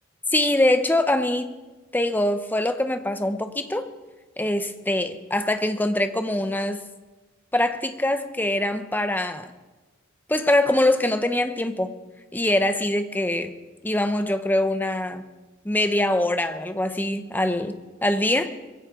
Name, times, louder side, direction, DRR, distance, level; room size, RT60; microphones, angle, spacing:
voice 1, 0.3-1.5 1.9-3.9 4.4-6.8 7.5-9.5 10.3-11.9 12.3-13.5 13.8-15.2 15.6-17.7 18.0-18.5, left 1 dB, 10° left, 8 dB, 0.9 m, -23 dB
21.5 x 16.0 x 3.8 m, 1.2 s
head